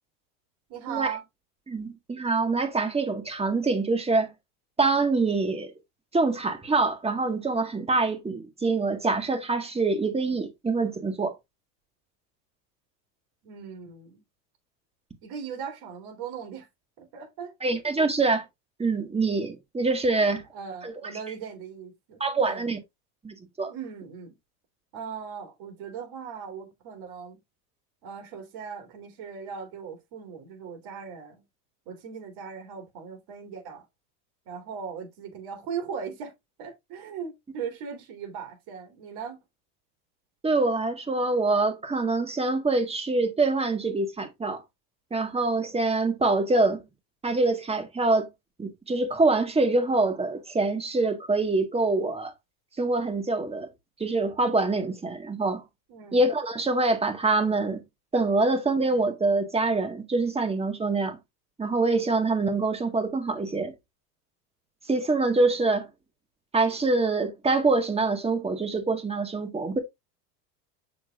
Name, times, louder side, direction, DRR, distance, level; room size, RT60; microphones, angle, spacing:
voice 1, 0.7-1.2 13.4-14.2 15.2-16.7 17.0-17.5 20.1-22.6 23.6-24.3 24.9-27.4 28.0-31.4 31.8-33.8 34.4-36.3 36.6-39.4 55.9-56.2, right 7 dB, 50° right, 3.4 m, -38 dB
voice 2, 1.7-4.3 4.8-5.7 6.1-11.3 17.6-18.4 18.8-20.4 20.8-20.9 22.2-22.8 23.2-23.7 40.4-44.6 45.1-46.8 47.2-48.3 48.6-52.3 52.8-53.7 54.0-55.6 56.1-57.8 58.1-61.2 61.6-63.7 64.9-65.9 66.5-69.8, right 3 dB, 10° right, 1.7 m, -25 dB
7.1 x 6.4 x 2.5 m
supercardioid pair, 120°, 49 cm